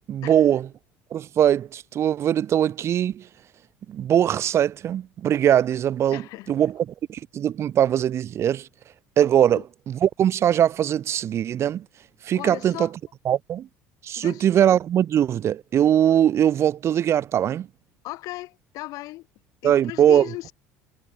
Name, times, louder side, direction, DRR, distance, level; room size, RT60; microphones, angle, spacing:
voice 1, 0.1-0.7 1.1-3.3 3.9-8.7 9.2-11.9 12.2-12.9 13.3-13.7 14.0-17.7 19.6-20.3, right 10 dB, 45° right, 0.5 m, -21 dB
voice 2, 6.1-6.5 9.4-9.6 12.3-12.9 14.2-14.4 18.0-19.3 19.6-20.5, left 18 dB, 65° left, 4.7 m, -36 dB
hypercardioid pair, 65°, 7 cm